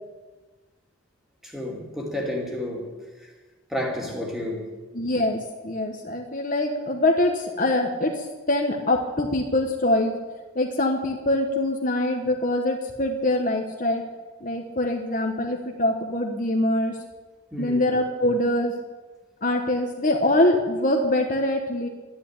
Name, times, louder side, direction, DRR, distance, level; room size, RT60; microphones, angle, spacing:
voice 1, 1.4-3.3 3.7-4.7 17.5-17.9, left 1 dB, ahead, -1 dB, 2.6 m, -31 dB
voice 2, 4.9-10.2 10.5-14.0 14.4-16.9 17.6-18.7 19.4-21.9, left 1 dB, 40° left, 2 dB, 1.3 m, -24 dB
12.5 x 10.5 x 8.9 m, 1.3 s
head